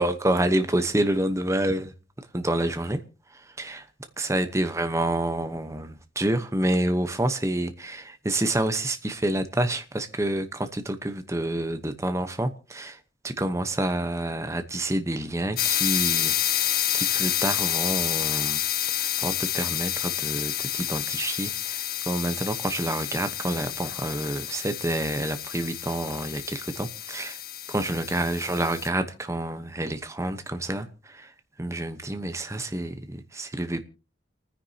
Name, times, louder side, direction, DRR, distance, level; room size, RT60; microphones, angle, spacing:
voice 1, 0.0-1.9 2.3-3.0 3.6-3.8 4.2-13.0 13.2-18.6 18.9-27.4 27.7-30.9 31.6-33.8, right 1 dB, 15° right, 0.9 m, -28 dB
sound 1, 15.6-28.9, left 11 dB, 50° left, 0.6 m, -29 dB
29.5 x 9.9 x 2.8 m
head